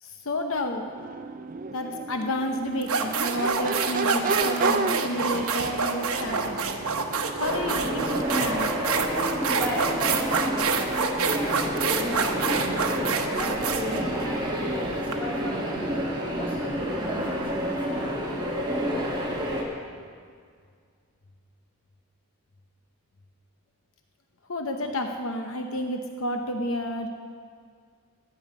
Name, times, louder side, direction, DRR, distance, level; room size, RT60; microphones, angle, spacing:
voice 1, 0.0-0.9 1.7-6.6 7.4-8.7 24.5-27.1, left 1 dB, 65° left, 4 dB, 0.8 m, -30 dB
Crowd / Race car auto racing / Accelerating revving vroom, 0.8-17.8, right 3 dB, 35° right, 0.5 m, -36 dB
sound 1, 2.2-2.4 2.8-15.1, right 5 dB, 75° right, 1.0 m, -27 dB
sound 2, 7.4-19.6, equal, 20° right, 1.8 m, -29 dB
voice 2, 9.5-16.0 16.4-19.4, equal, 10° left, -6 dB, 2.8 m, -38 dB
15.0 x 10.0 x 5.4 m, 2.1 s
head